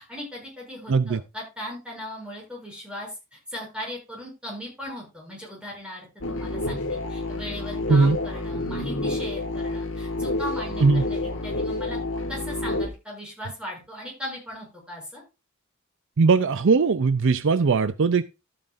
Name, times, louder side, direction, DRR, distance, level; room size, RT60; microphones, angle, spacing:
voice 1, 0.0-12.0 12.3-15.2, equal, 5° right, 6.9 m, -38 dB
voice 2, 0.9-1.2 7.9-8.2 10.8-11.0 16.2-18.2, right 4 dB, 60° right, 0.5 m, -19 dB
sound 1, 6.2-12.9, left 2 dB, 60° left, 1.9 m, -29 dB
13.5 x 8.9 x 2.5 m
head